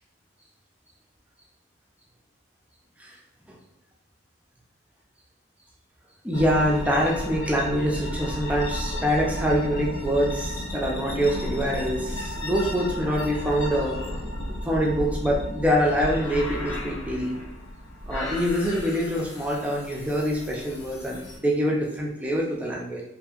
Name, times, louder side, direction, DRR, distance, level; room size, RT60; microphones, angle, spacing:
voice 1, 6.2-14.0 14.6-17.4 18.1-23.0, equal, 5° right, -3 dB, 0.4 m, -25 dB
sound 1, 6.3-21.4, left 1 dB, 70° left, 0.5 m, -33 dB
2.7 x 2.5 x 2.4 m, 0.81 s
head